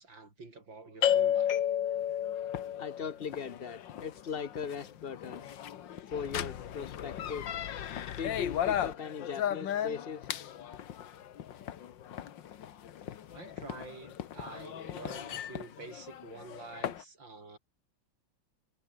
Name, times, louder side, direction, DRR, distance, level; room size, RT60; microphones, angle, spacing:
voice 1, 0.0-1.5 13.3-17.6, right 3 dB, 70° right, 6.1 m, -48 dB
sound 1, 1.0-17.0, left 10 dB, 70° left, 1.8 m, -34 dB
voice 2, 2.8-5.5 6.1-7.5 8.1-10.3, left 6 dB, 40° left, 0.9 m, -39 dB
omnidirectional pair, 2.2 m